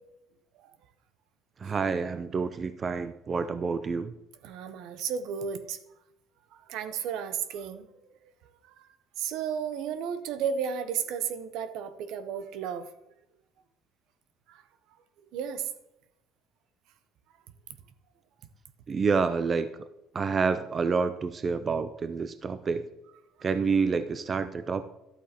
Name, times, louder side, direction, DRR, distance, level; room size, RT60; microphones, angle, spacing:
voice 1, 1.6-4.1 18.9-19.7 20.1-22.9 23.4-24.9, right 5 dB, 30° right, 12 dB, 0.4 m, -28 dB
voice 2, 4.4-5.8 6.5-7.9 8.2-8.3 8.6-8.9 9.2-12.9 14.5-14.6 15.3-15.7, right 7 dB, 70° right, 12 dB, 0.7 m, -33 dB
12.0 x 8.2 x 2.9 m, 0.89 s
cardioid pair, 135°, 0 cm